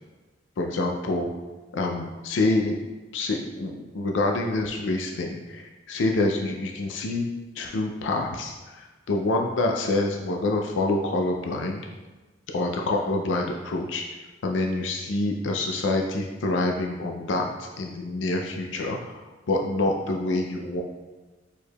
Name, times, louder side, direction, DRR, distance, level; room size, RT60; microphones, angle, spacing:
voice 1, 0.6-1.3 1.7-2.8 3.1-7.2 7.6-11.9 12.5-14.0 14.4-20.8, left 2 dB, 90° left, 1 dB, 0.4 m, -27 dB
4.6 x 4.6 x 2.2 m, 1.2 s
head